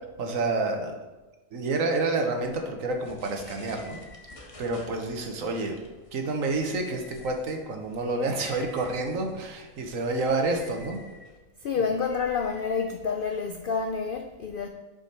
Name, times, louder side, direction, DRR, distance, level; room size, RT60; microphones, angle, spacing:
voice 1, 0.2-0.9 1.5-4.0 4.6-5.8 6.1-11.0, right 3 dB, 70° right, 4 dB, 1.3 m, -29 dB
sound 1, 2.9-13.5, left 1 dB, 30° left, 0.8 m, -50 dB
voice 2, 11.6-14.7, left 5 dB, 90° left, 5 dB, 0.4 m, -28 dB
7.5 x 5.0 x 4.2 m, 1.2 s
omnidirectional pair, 1.5 m